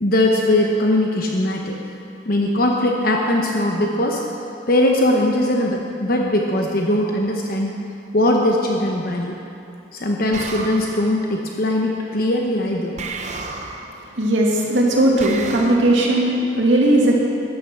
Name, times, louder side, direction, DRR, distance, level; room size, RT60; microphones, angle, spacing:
voice 1, 0.0-1.7 2.3-4.2 4.7-7.7 8.1-9.4 9.9-13.0, left 1 dB, 50° left, 0 dB, 0.9 m, -20 dB
sound 1, 10.3-11.2 13.0-14.0 15.2-15.8, right 4 dB, 40° right, 0.8 m, -31 dB
voice 2, 14.2-17.2, right 1 dB, 75° right, -2 dB, 2.2 m, -17 dB
13.5 x 10.0 x 6.0 m, 2.7 s
head